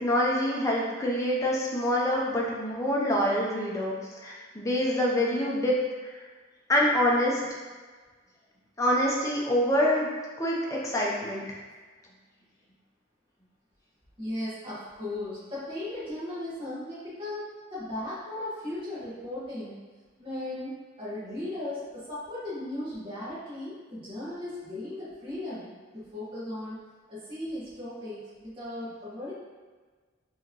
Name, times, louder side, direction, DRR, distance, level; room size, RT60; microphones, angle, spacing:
voice 1, 0.0-5.8 6.1-6.2 6.7-7.4 8.8-10.1 10.4-11.4, equal, 15° left, -3 dB, 0.6 m, -26 dB
voice 2, 14.2-19.8 20.2-26.8 27.1-29.3, left 1 dB, 25° right, -11 dB, 1.4 m, -37 dB
4.7 x 2.9 x 3.0 m, 1.4 s
head